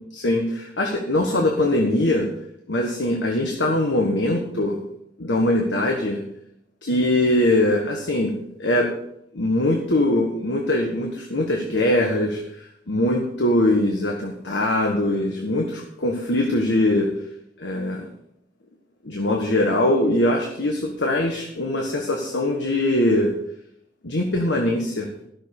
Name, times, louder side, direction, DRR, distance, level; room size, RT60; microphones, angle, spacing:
voice 1, 0.1-2.3 2.7-4.8 5.2-6.2 6.8-8.3 8.6-8.9 9.3-17.1 17.6-18.1 19.0-23.3 24.0-25.1, left 1 dB, 85° left, 1 dB, 1.5 m, -22 dB
13.0 x 6.6 x 6.6 m, 0.77 s
head